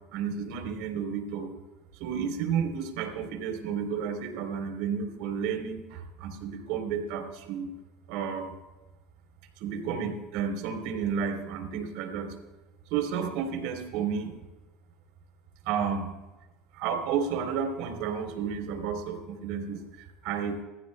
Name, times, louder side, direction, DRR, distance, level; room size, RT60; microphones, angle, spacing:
voice 1, 0.1-1.5 2.0-7.7 8.1-8.5 9.6-12.4 12.9-14.3 15.6-16.1 16.7-20.6, right 7 dB, 70° right, 4 dB, 3.5 m, -32 dB
25.0 x 15.0 x 2.2 m, 1.1 s
supercardioid pair, 110°, 0 cm